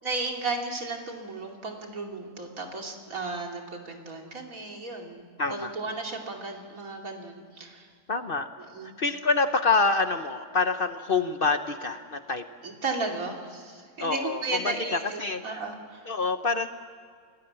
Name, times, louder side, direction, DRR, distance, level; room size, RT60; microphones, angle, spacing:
voice 1, 0.0-7.9 8.6-9.0 12.6-16.1, right 3 dB, 50° right, 1 dB, 3.1 m, -34 dB
voice 2, 5.4-5.7 8.1-8.5 9.0-12.4 14.0-14.7 15.2-15.6 16.1-16.7, left 3 dB, 45° left, 8 dB, 0.7 m, -26 dB
28.0 x 18.5 x 7.6 m, 2.1 s
omnidirectional pair, 1.9 m